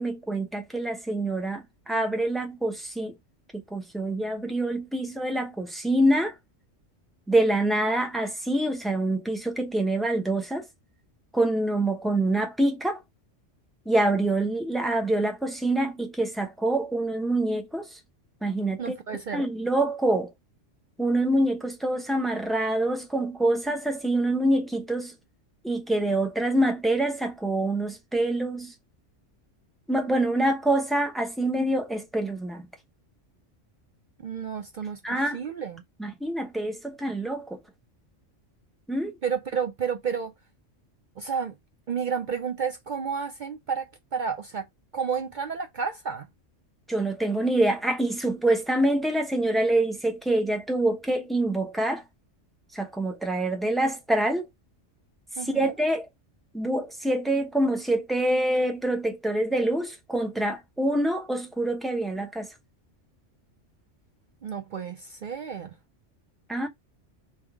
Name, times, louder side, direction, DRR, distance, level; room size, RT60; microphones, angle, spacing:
voice 1, 0.0-3.1 3.5-6.3 7.3-10.7 11.3-13.0 13.9-18.0 18.4-18.9 19.3-20.3 21.0-25.1 25.6-28.7 29.9-32.7 35.0-35.4 36.0-37.6 38.9-39.1 46.9-52.0 52.7-54.4 55.4-56.1 56.5-62.5 66.5-66.7, right 1 dB, ahead, 0.5 m, -26 dB
voice 2, 18.8-19.4 34.2-35.8 39.2-40.3 41.2-41.5 41.9-44.6 44.9-46.3 55.4-55.7 64.4-65.8, right 6 dB, 55° right, 0.5 m, -31 dB
3.4 x 2.8 x 3.4 m
omnidirectional pair, 1.3 m